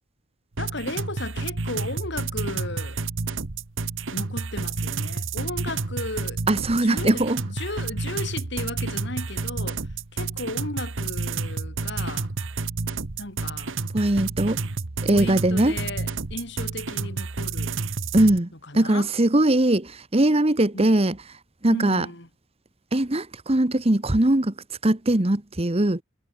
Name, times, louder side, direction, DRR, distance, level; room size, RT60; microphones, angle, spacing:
voice 1, 0.6-3.0 4.1-6.4 6.7-12.3 13.2-13.8 15.1-17.8 18.6-19.1 20.7-20.9 21.7-22.3, left 2 dB, 60° left, 4.5 m, -35 dB
sound 1, 0.6-18.4, right 4 dB, 70° right, 1.2 m, -30 dB
voice 2, 6.5-7.4 13.9-14.6 15.0-15.8 18.1-18.5 18.7-21.2 21.6-22.1 22.9-24.5 24.8-26.0, right 1 dB, 30° right, 1.2 m, -21 dB
head